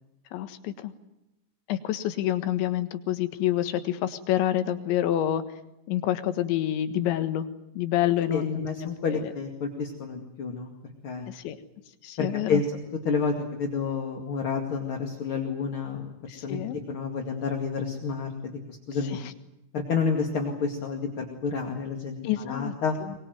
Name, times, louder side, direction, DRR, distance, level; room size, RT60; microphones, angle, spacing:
voice 1, 0.3-0.9 1.7-5.4 5.9-7.5 7.8-9.3 11.3-11.6 12.0-12.6 16.3-16.8 19.1-19.3 22.2-22.7 23.0-23.1, left 12 dB, 90° left, 10 dB, 3.8 m, -28 dB
voice 2, 8.3-10.7 11.0-11.3 12.2-12.6 13.0-19.2 19.7-23.0, left 5 dB, 40° left, 2 dB, 2.4 m, -30 dB
23.5 x 22.0 x 9.4 m, 0.89 s
omnidirectional pair, 5.1 m